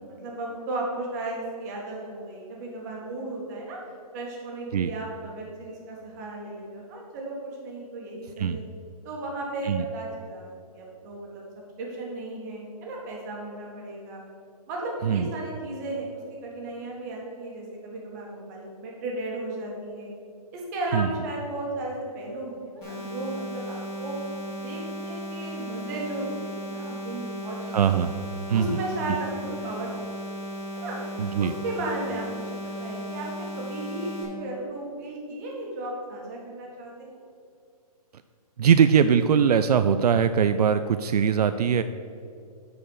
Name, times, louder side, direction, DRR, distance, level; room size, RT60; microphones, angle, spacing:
voice 1, 0.0-3.8 4.1-8.6 9.0-11.4 11.8-14.2 14.7-16.1 16.4-20.1 20.5-24.1 24.5-27.8 28.5-30.1 30.7-31.0 31.4-37.1, right 2 dB, 25° right, -2 dB, 1.8 m, -35 dB
sound 1, 22.8-34.2, equal, 20° left, 2.3 m, -36 dB
voice 2, 27.7-28.2 28.5-28.8 31.2-31.5 38.6-41.8, right 7 dB, 75° right, 10 dB, 0.4 m, -21 dB
7.7 x 4.9 x 6.3 m, 2.4 s
hypercardioid pair, 165°, 20 cm